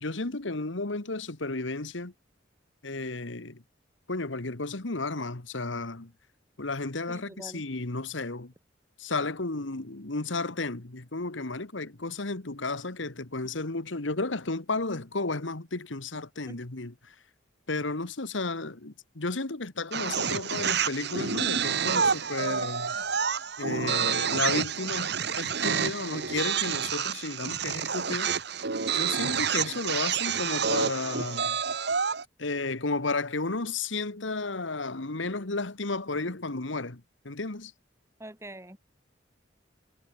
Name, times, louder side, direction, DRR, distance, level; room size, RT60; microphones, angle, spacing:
voice 1, 0.0-2.1 2.8-3.6 4.1-6.1 6.6-8.5 9.0-16.9 17.7-22.9 23.6-28.3 28.9-31.6 32.4-37.7, left 3 dB, 85° left, 1.8 m, -33 dB
voice 2, 7.1-7.6 16.5-16.6 38.2-38.8, right 1 dB, 15° right, 5.0 m, -44 dB
sound 1, 19.9-32.2, right 6 dB, 60° right, 1.4 m, -29 dB
head